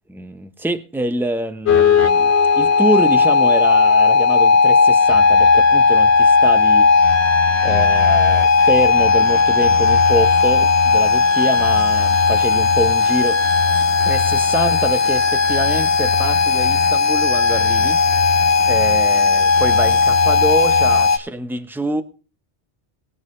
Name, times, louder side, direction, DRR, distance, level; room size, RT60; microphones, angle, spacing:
voice 1, 0.1-6.9 7.6-13.7 14.0-18.0 18.7-22.0, right 1 dB, ahead, 0.8 m, -25 dB
sound 1, 1.7-21.2, left 5 dB, 70° left, 1.1 m, -15 dB
19.5 x 8.1 x 3.2 m
omnidirectional pair, 1.2 m